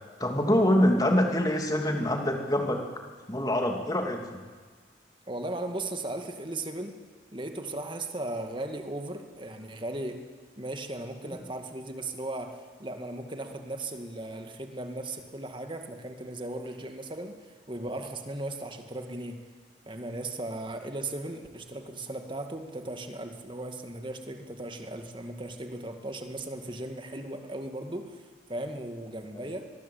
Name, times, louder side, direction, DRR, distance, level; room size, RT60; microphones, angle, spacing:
voice 1, 0.2-2.8 3.3-4.4, left 1 dB, 20° left, 3 dB, 2.7 m, -25 dB
voice 2, 5.3-7.0 7.3-10.3 10.6-19.4 19.9-29.7, right 2 dB, 25° right, 5 dB, 2.2 m, -37 dB
23.5 x 21.5 x 8.6 m, 1.5 s
head